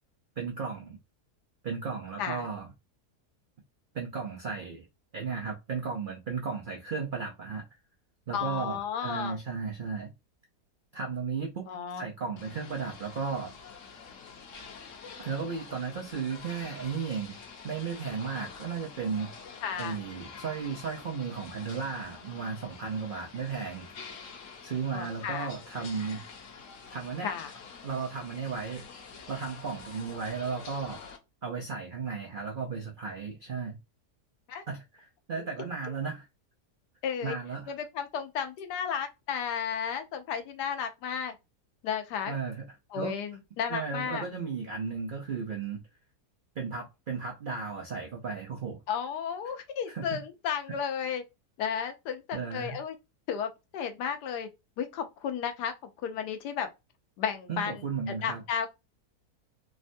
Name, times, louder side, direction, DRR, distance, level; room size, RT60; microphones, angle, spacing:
voice 1, 0.4-1.0 1.6-2.7 3.9-4.9 5.1-7.7 8.3-10.1 10.9-11.7 12.0-13.6 15.2-17.4 17.6-19.3 19.8-23.9 24.6-26.2 26.9-27.3 27.8-28.8 29.3-31.0 31.4-33.8 34.7-36.3 37.2-37.7 42.3-42.6 42.9-43.2 43.7-45.8 46.6-48.8 49.9-50.2 52.3-52.8 57.5-58.4, right 5 dB, 85° right, 0.4 m, -35 dB
voice 2, 8.3-9.4 11.7-12.1 19.6-20.0 24.9-25.5 27.2-27.5 34.5-34.6 37.0-37.4 37.7-41.3 41.8-42.4 42.9-44.2 48.9-51.2 51.6-52.9 53.3-54.5 54.8-55.7 56.0-56.7 57.2-57.8 58.1-58.7, left 7 dB, 85° left, 1.2 m, -33 dB
sound 1, 12.4-31.2, left 5 dB, 60° left, 1.0 m, -47 dB
3.4 x 2.2 x 2.5 m
omnidirectional pair, 1.7 m